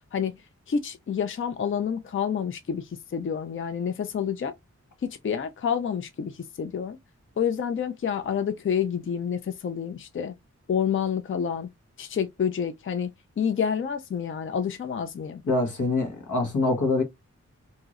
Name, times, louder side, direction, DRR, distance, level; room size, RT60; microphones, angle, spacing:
voice 1, 0.7-4.5 5.2-7.0 7.4-10.3 10.7-11.7 12.0-13.1 13.4-15.4, left 7 dB, 45° left, 0.4 m, -28 dB
voice 2, 15.4-17.0, left 2 dB, 90° left, 1.1 m, -24 dB
3.0 x 2.7 x 2.4 m
wide cardioid pair, 115°, 29 cm